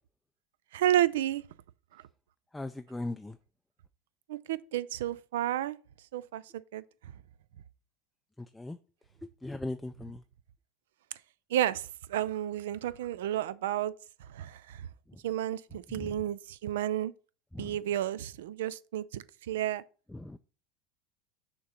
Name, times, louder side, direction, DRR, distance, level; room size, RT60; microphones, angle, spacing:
voice 1, 0.7-1.4 4.3-5.8 6.1-6.4 6.7-6.8 11.5-13.9 14.3-14.8 15.2-17.1 17.6-19.8, right 12 dB, 75° right, 0.3 m, -31 dB
voice 2, 2.5-3.4 8.6-8.8 9.4-10.2 15.9-16.1 17.5-17.7 20.1-20.4, left 2 dB, 10° left, 0.3 m, -38 dB
6.4 x 3.0 x 5.5 m
hypercardioid pair, 80°, 0 cm